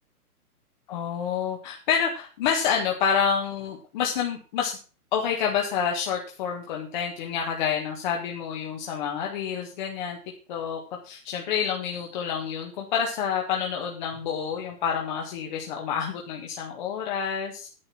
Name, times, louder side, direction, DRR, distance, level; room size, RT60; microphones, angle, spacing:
voice 1, 0.9-4.7 5.1-10.2 10.5-17.7, left 7 dB, 30° left, 0 dB, 1.6 m, -28 dB
10.0 x 8.2 x 5.7 m, 0.36 s
hypercardioid pair, 155°, 47 cm